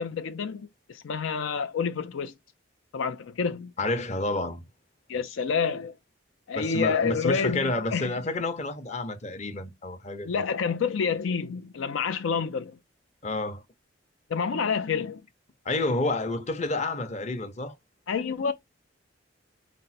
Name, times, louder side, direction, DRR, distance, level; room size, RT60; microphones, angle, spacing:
voice 1, 0.0-2.3 2.9-3.7 5.1-5.9 6.5-8.1 10.2-12.8 14.3-15.2 18.1-18.5, left 6 dB, 85° left, 0.5 m, -28 dB
voice 2, 3.8-4.6 6.6-10.4 13.2-13.6 15.6-17.7, left 2 dB, 35° left, 0.8 m, -29 dB
5.2 x 2.1 x 4.2 m
head